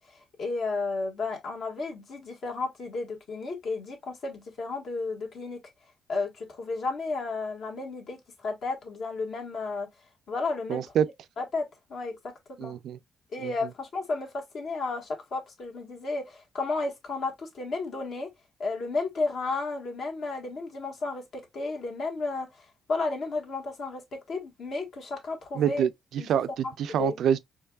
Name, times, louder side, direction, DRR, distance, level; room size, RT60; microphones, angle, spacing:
voice 1, 0.4-5.6 6.1-8.2 8.4-9.9 10.3-10.8 11.4-12.1 12.6-12.7 13.3-18.3 18.6-22.6 22.9-25.8 26.2-26.3 26.6-27.1, left 3 dB, 65° left, 1.5 m, -33 dB
voice 2, 10.7-11.1 12.6-13.0 13.4-13.5 25.6-25.9 26.3-27.4, right 9 dB, 75° right, 0.3 m, -26 dB
4.6 x 2.9 x 2.3 m
cardioid pair, 90°, 0 cm